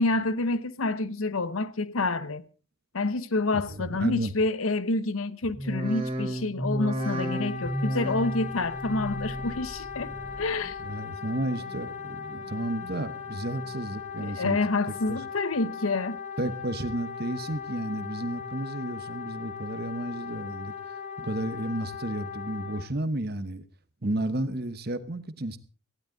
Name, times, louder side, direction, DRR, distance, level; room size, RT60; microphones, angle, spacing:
voice 1, 0.0-2.4 2.9-10.8 14.2-16.2, left 2 dB, 80° left, 0.9 m, -28 dB
voice 2, 3.5-4.3 10.8-14.6 15.1-15.2 16.4-20.7 21.2-23.6 24.0-25.6, right 1 dB, 45° right, 1.1 m, -32 dB
sound 1, 5.5-10.8 11.2-11.8 12.2-12.9 13.3-14.0 14.4-15.1 15.6-16.1 16.7-16.8, right 1 dB, 25° right, 3.4 m, -35 dB
Wind instrument woodwind instrument, 7.0-22.9, left 6 dB, 35° left, 2.2 m, -39 dB
18.5 x 15.5 x 4.0 m
head